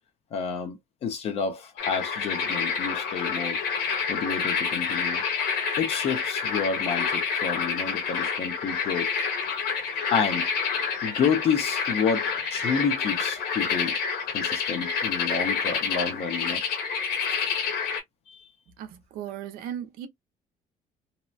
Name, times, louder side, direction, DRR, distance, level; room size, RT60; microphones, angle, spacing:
voice 1, 0.3-3.6 4.1-5.2 5.8-9.1 10.1-10.5 11.0-14.0 14.3-16.6 18.3-18.4, left 6 dB, 45° left, 0.6 m, -29 dB
sound 1, 1.8-18.0, left 6 dB, 90° left, 1.1 m, -28 dB
voice 2, 18.8-20.1, right 10 dB, 75° right, 0.7 m, -36 dB
2.9 x 2.1 x 2.4 m
cardioid pair, 175°, 15 cm